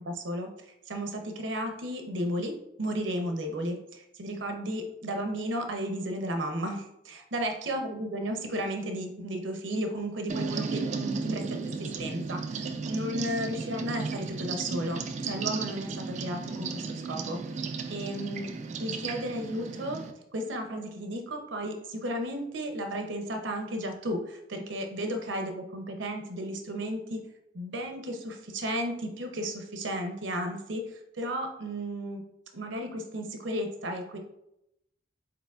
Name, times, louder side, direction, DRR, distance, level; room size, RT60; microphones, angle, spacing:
voice 1, 0.1-17.4 17.9-18.5 18.8-20.0 20.3-27.2 27.5-32.2 32.5-34.2, equal, 85° right, 5 dB, 0.7 m, -34 dB
sound 1, 10.3-20.1, right 4 dB, 40° right, 0.3 m, -34 dB
4.8 x 4.1 x 2.4 m, 0.82 s
head